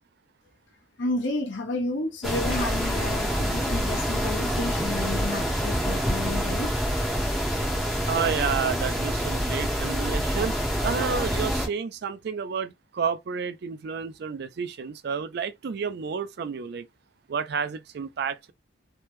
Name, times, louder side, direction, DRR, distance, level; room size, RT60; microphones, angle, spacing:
voice 1, 1.0-6.7, left 2 dB, 65° left, 0.8 m, -31 dB
sound 1, 2.2-11.7, equal, ahead, 0.8 m, -26 dB
voice 2, 8.1-10.5 10.8-16.9 17.3-18.5, right 6 dB, 50° right, 0.3 m, -30 dB
3.2 x 2.1 x 3.0 m
head